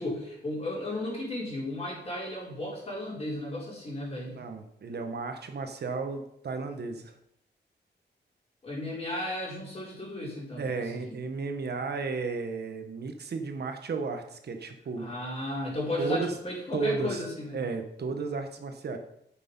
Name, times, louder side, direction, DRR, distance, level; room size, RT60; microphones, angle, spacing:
voice 1, 0.0-4.4 8.6-11.2 15.0-17.6, left 1 dB, 35° left, -5 dB, 4.4 m, -34 dB
voice 2, 4.3-7.1 10.6-15.1 16.0-16.3 16.7-17.2 17.5-19.0, right 4 dB, 60° right, 6 dB, 1.3 m, -33 dB
9.0 x 6.8 x 5.5 m, 0.75 s
wide cardioid pair, 155°, 19 cm